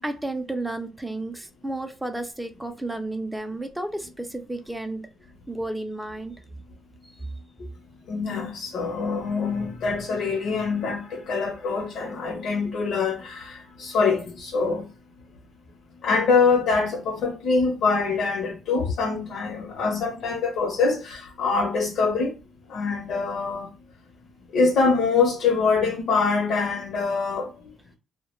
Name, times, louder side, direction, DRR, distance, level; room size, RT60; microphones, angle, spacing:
voice 1, 0.0-5.1 5.5-6.4 7.0-7.1, right 2 dB, 5° right, 0.4 m, -32 dB
voice 2, 8.1-14.9 16.0-22.3 22.7-23.7 24.5-27.5, left 4 dB, 75° left, 0.6 m, -24 dB
2.2 x 2.1 x 3.0 m
cardioid pair, 90°, 0 cm